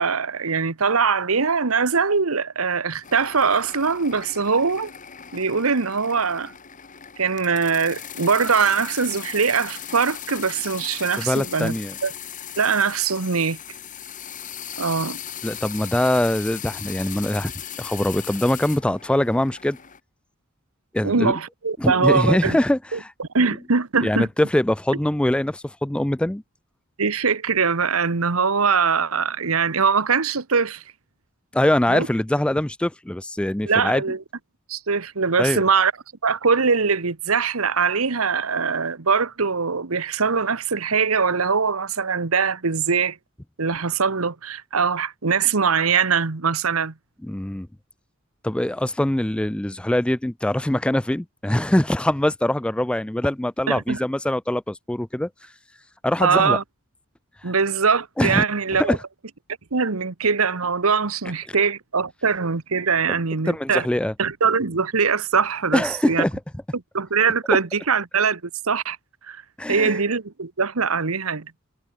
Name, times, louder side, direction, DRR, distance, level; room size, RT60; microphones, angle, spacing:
voice 1, 0.0-4.9 5.3-6.5 7.2-11.7 12.0-12.1 12.6-13.6 14.8-15.2 21.0-22.6 22.9-24.3 27.0-30.8 31.9-32.1 33.7-34.2 34.7-35.9 36.2-43.2 43.6-46.9 53.7-54.0 56.2-56.6 57.4-59.0 59.7-63.9 64.2-66.2 66.7-69.0 69.3-69.4 69.7-71.5, right 5 dB, 85° right, 1.2 m, -22 dB
sound 1, 3.0-20.0, left 9 dB, 40° left, 1.8 m, -38 dB
voice 2, 11.2-12.0 15.4-17.5 17.8-19.8 20.9-21.4 21.8-23.1 23.4-23.6 24.0-26.4 31.5-34.0 35.4-35.6 47.2-47.7 48.4-55.3 56.0-56.6 57.4-57.5 58.2-58.4 58.8-59.0 63.5-64.1 65.7-66.4 69.6-70.0, left 1 dB, 5° left, 0.3 m, -23 dB
head